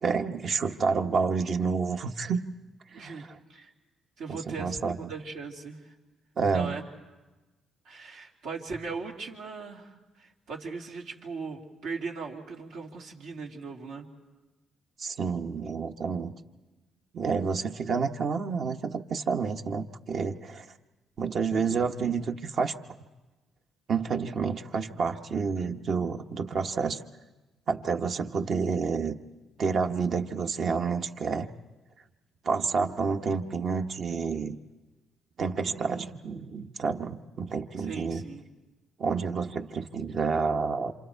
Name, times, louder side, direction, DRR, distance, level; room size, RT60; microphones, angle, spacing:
voice 1, 0.0-2.4 2.9-3.4 4.3-5.0 6.4-6.8 15.0-16.3 17.1-20.7 21.2-22.7 23.9-27.0 27.7-29.2 29.6-31.5 32.4-34.6 35.4-38.2 39.0-40.9, right 5 dB, 55° right, 5 dB, 1.1 m, -29 dB
voice 2, 2.9-3.7 4.2-4.7 5.1-5.9 6.5-6.8 7.8-14.1 37.8-38.5, right 4 dB, 85° right, -1 dB, 2.7 m, -39 dB
27.5 x 27.0 x 4.6 m, 1.1 s
cardioid pair, 90°, 0 cm